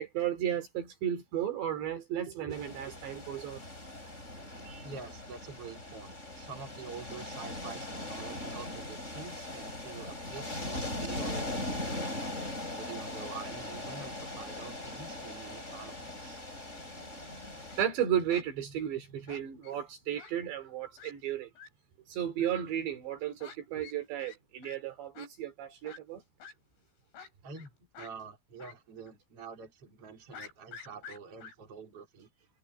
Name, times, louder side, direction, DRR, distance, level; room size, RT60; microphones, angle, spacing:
voice 1, 0.0-3.6 4.6-4.9 16.8-21.5 22.1-26.2, right 10 dB, 60° right, 5.0 m, -34 dB
sound 1, 2.5-17.8, left 1 dB, 15° left, 7.4 m, -40 dB
voice 2, 4.8-12.4 12.7-16.4 27.4-32.3, right 5 dB, 30° right, 4.4 m, -47 dB
Fowl, 17.4-17.8 18.3-18.5 19.3-19.8 20.2-20.3 20.6-20.7 21.0-21.1 21.6-21.7 22.4-22.5 23.4-23.6 23.8-24.0 24.2-24.4 24.6-24.8 25.2-25.3 25.9-26.0 26.4-26.5 27.1-27.7 28.0-28.1 28.6-28.8 29.1-29.2 30.3-31.5, left 6 dB, 65° left, 9.0 m, -48 dB
omnidirectional pair, 5.8 m